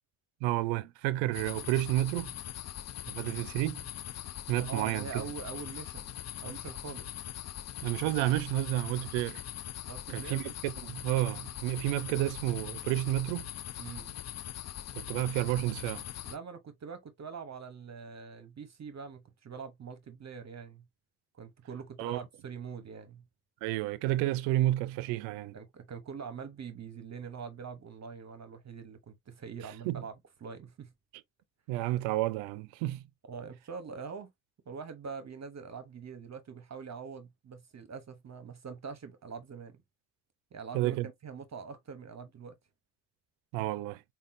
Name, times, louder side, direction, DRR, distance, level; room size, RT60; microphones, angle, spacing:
voice 1, 0.4-2.3 3.1-3.8 4.5-5.3 7.8-9.4 10.1-13.5 14.9-16.0 22.0-22.2 23.6-25.6 29.6-30.0 31.7-33.0 40.7-41.1 43.5-44.0, right 16 dB, 85° right, 0.5 m, -31 dB
sound 1, 1.3-16.4, left 12 dB, 40° left, 0.4 m, -42 dB
voice 2, 4.6-7.1 9.9-10.4 13.8-14.1 16.2-20.8 21.3-23.2 25.5-30.1 30.4-30.9 33.3-34.3 34.7-39.8 40.5-42.5, right 5 dB, 35° right, 0.8 m, -44 dB
5.3 x 2.4 x 2.5 m
supercardioid pair, 60°, 44 cm